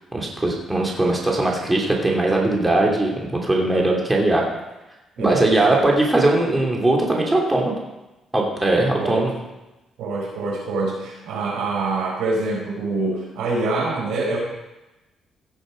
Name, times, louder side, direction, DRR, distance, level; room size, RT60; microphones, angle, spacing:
voice 1, 0.1-4.4 5.2-7.7 8.3-9.3, right 2 dB, 15° right, -1 dB, 2.7 m, -20 dB
voice 2, 5.2-5.8 9.0-9.3 10.0-14.4, right 3 dB, 90° right, -3 dB, 5.0 m, -25 dB
16.5 x 6.4 x 5.1 m, 1.0 s
cardioid pair, 90°, 0 cm